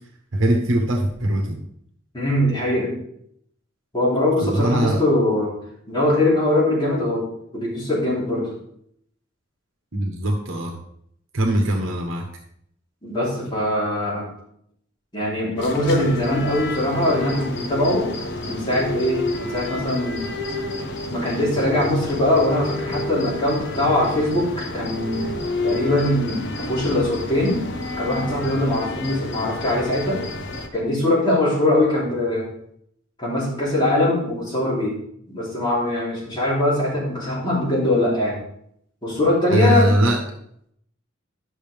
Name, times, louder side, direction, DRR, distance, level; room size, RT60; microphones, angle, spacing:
voice 1, 0.3-1.6 4.4-5.0 9.9-10.8 11.3-12.3 39.5-40.2, right 1 dB, 70° right, 1 dB, 1.1 m, -21 dB
voice 2, 2.1-2.9 3.9-5.5 5.9-7.2 7.5-8.5 13.0-14.3 15.1-18.1 18.4-20.2 21.1-25.2 25.6-27.6 28.0-30.2 30.7-32.5 33.2-35.0 35.3-38.4 39.0-39.9, left 1 dB, 25° left, -7 dB, 3.5 m, -21 dB
sound 1, 15.6-30.7, left 2 dB, 60° left, 1.0 m, -30 dB
11.0 x 6.4 x 3.4 m, 0.72 s
head